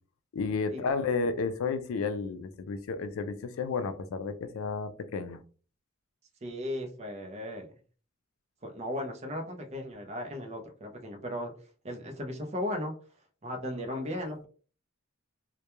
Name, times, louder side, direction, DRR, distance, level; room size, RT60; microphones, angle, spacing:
voice 1, 0.3-5.4, left 4 dB, 75° left, 0.4 m, -32 dB
voice 2, 6.4-7.7 8.6-11.5 11.8-12.9 13.4-14.5, left 1 dB, 30° right, 0.5 m, -36 dB
2.2 x 2.2 x 2.9 m
head